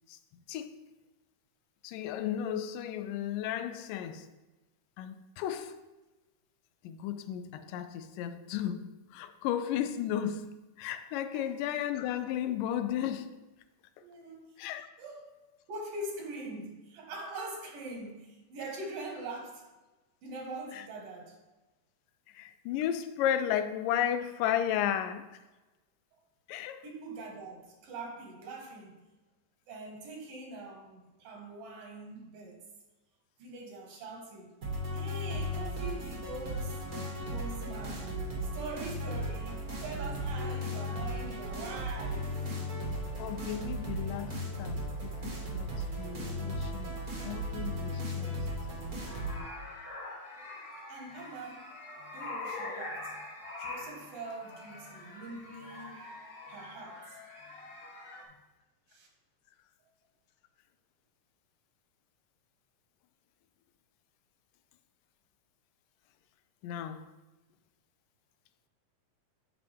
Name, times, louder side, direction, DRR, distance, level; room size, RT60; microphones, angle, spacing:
voice 1, 0.5-0.9 1.8-4.3 5.0-5.8 6.8-13.4 14.6-14.9 20.7-20.8 22.3-25.4 26.5-26.9 43.2-47.0 47.2-48.5 52.0-52.1 66.6-67.1, left 10 dB, 85° left, 2.2 m, -34 dB
voice 2, 14.0-14.5 15.0-15.3 15.7-19.7 20.2-21.4 26.8-29.0 29.7-32.6 33.4-34.5 34.9-36.8 37.3-38.2 38.5-42.6 50.9-51.8 52.1-53.2 53.6-56.0 56.5-57.2 58.9-59.1, right 2 dB, 85° right, 3.2 m, -43 dB
sound 1, 34.6-49.4, equal, 50° right, 1.1 m, -36 dB
sound 2, 49.1-58.2, left 2 dB, 55° left, 1.6 m, -44 dB
8.8 x 5.9 x 3.4 m
omnidirectional pair, 3.9 m